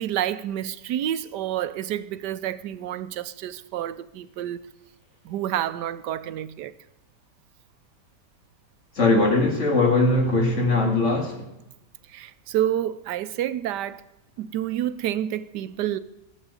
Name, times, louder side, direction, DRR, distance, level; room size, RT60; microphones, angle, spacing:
voice 1, 0.0-4.6 5.2-6.7 12.1-14.0 14.4-16.0, right 11 dB, 90° right, 1.3 m, -29 dB
voice 2, 9.0-11.5, left 2 dB, 45° left, 2.3 m, -20 dB
15.5 x 7.6 x 8.2 m
omnidirectional pair, 1.8 m